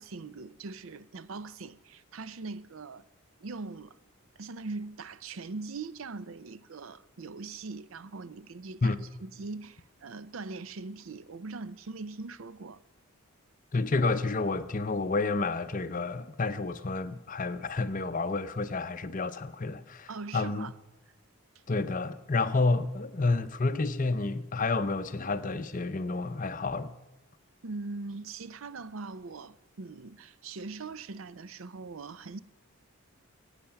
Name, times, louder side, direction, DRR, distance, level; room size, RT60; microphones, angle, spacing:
voice 1, 0.0-3.1 3.4-4.0 4.4-8.9 9.2-12.8 20.1-20.7 27.6-32.4, right 3 dB, 65° right, 0.6 m, -41 dB
voice 2, 13.7-20.7 21.7-27.0, left 3 dB, 40° left, 0.6 m, -30 dB
22.5 x 8.9 x 5.8 m
head